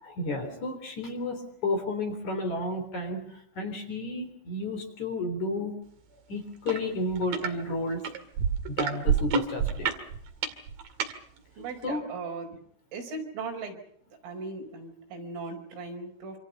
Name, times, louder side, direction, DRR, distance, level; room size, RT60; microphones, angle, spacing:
voice 1, 0.0-5.7 6.3-8.0 8.7-9.9 11.8-12.0, left 2 dB, 40° left, 5 dB, 4.5 m, -32 dB
sound 1, 6.7-6.8 7.1-7.5 8.0-11.1 11.8-11.9, right 7 dB, 55° right, 3.2 m, -27 dB
voice 2, 11.6-12.6 12.9-13.8 14.2-16.4, right 4 dB, 75° right, 3 dB, 7.3 m, -38 dB
27.0 x 26.5 x 5.5 m, 0.62 s
omnidirectional pair, 5.9 m